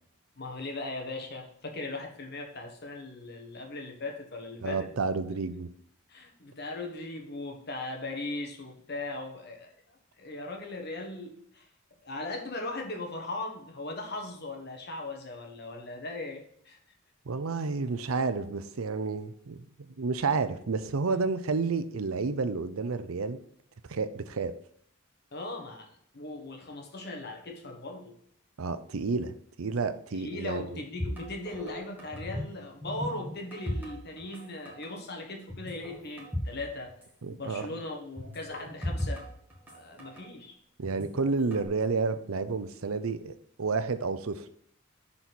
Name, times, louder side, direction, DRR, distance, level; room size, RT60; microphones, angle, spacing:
voice 1, 0.4-4.9 6.1-9.7 10.2-11.7 12.0-16.8 25.3-25.9 26.1-28.1 30.1-36.9 37.3-39.2 39.7-40.6, left 2 dB, 50° left, 2 dB, 1.4 m, -38 dB
voice 2, 4.6-5.7 17.3-19.7 20.0-23.4 23.9-24.5 28.6-30.8 37.2-37.7 40.8-44.5, right 4 dB, 85° right, 11 dB, 0.6 m, -30 dB
sound 1, 31.0-32.5 32.8-34.4 34.7-34.9 35.5-36.6 36.9-37.0 38.2-40.2 40.8-41.7, left 1 dB, 10° right, 1.8 m, -36 dB
6.9 x 4.3 x 6.0 m, 0.66 s
head